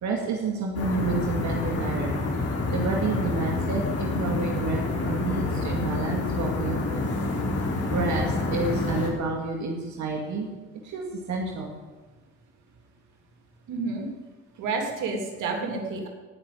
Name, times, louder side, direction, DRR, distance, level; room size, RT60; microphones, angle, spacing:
voice 1, 0.0-2.2 2.7-7.0 7.9-10.5 10.8-11.7, right 3 dB, 70° right, 0 dB, 2.3 m, -29 dB
sound 1, 0.7-9.1, left 2 dB, 50° left, 3.6 m, -28 dB
voice 2, 13.7-14.1 14.6-16.1, right 4 dB, 85° right, 2 dB, 3.0 m, -29 dB
18.0 x 6.2 x 9.4 m, 1.3 s
cardioid pair, 90°, 30 cm